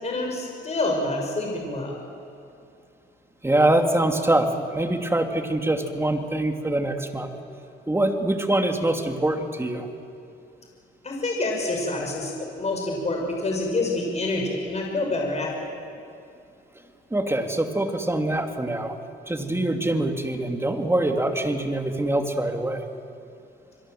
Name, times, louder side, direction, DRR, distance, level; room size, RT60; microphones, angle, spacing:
voice 1, 0.0-2.0 11.0-15.7, left 2 dB, 35° left, 0 dB, 5.8 m, -27 dB
voice 2, 3.4-7.3 7.9-9.9 17.1-19.0 19.3-22.9, right 1 dB, 10° right, 5 dB, 2.6 m, -24 dB
27.0 x 22.5 x 7.8 m, 2.6 s
cardioid pair, 90°, 20 cm